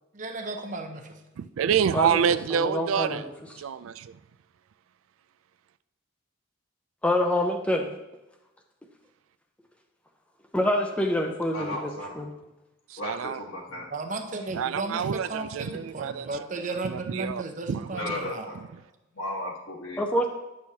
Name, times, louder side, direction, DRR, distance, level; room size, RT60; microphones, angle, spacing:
voice 1, 0.1-1.1 13.9-18.5, right 3 dB, 40° right, 5 dB, 0.7 m, -34 dB
voice 2, 1.4-3.3 3.6-4.2 12.9-13.4 14.5-16.4 16.8-17.4 17.7-18.0, right 7 dB, 80° right, 14 dB, 0.3 m, -27 dB
voice 3, 2.5-3.2 7.0-7.9 10.5-11.9 12.2-12.3 20.0-20.3, left 1 dB, 5° left, 3 dB, 0.5 m, -26 dB
voice 4, 11.5-12.2 13.0-13.9 17.9-18.6 19.1-20.0, left 1 dB, 80° left, -3 dB, 1.4 m, -35 dB
10.0 x 6.3 x 2.8 m, 1.0 s
head